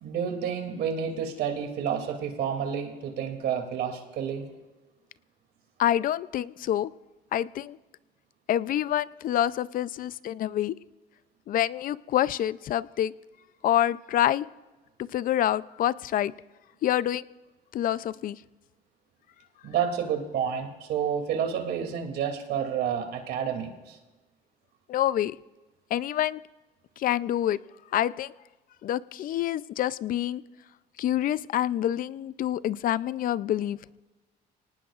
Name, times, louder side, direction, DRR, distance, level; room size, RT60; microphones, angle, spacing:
voice 1, 0.0-4.4 19.6-24.0, right 8 dB, 75° right, 4 dB, 2.7 m, -30 dB
voice 2, 5.8-6.9 7.3-7.8 8.5-10.7 11.5-13.1 13.6-14.5 15.0-16.3 16.8-17.2 17.7-18.4 24.9-25.4 25.9-26.4 27.0-27.6 27.9-28.3 28.8-30.4 31.0-33.8, left 12 dB, 55° left, 18 dB, 0.5 m, -27 dB
24.5 x 18.5 x 2.5 m, 1.2 s
cardioid pair, 110°, 17 cm